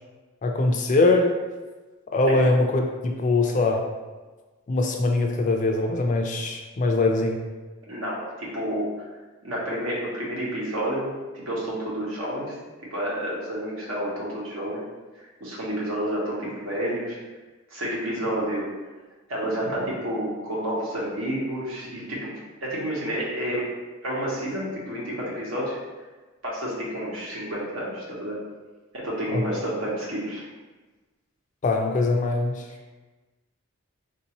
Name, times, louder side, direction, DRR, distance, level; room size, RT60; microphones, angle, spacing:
voice 1, 0.4-1.3 2.1-3.8 4.7-7.4 29.3-29.4 31.6-32.6, left 2 dB, 40° left, 3 dB, 0.4 m, -22 dB
voice 2, 7.9-9.1 9.4-12.6 12.9-14.8 15.4-17.2 17.7-18.7 19.3-23.6 24.0-25.8 26.4-28.4 28.9-30.5, right 1 dB, 80° right, -5 dB, 1.1 m, -30 dB
3.6 x 2.6 x 2.9 m, 1.2 s
head